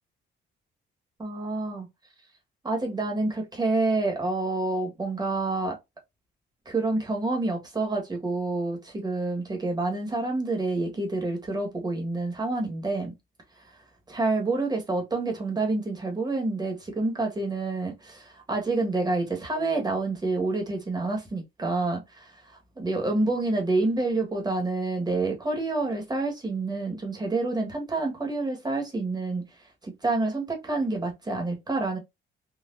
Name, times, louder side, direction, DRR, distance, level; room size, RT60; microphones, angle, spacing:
voice 1, 1.2-1.9 2.6-5.8 6.6-13.1 14.1-29.4 29.8-32.0, right 2 dB, 20° right, 1.4 m, -28 dB
4.1 x 2.4 x 2.6 m
cardioid pair, 105°, 21 cm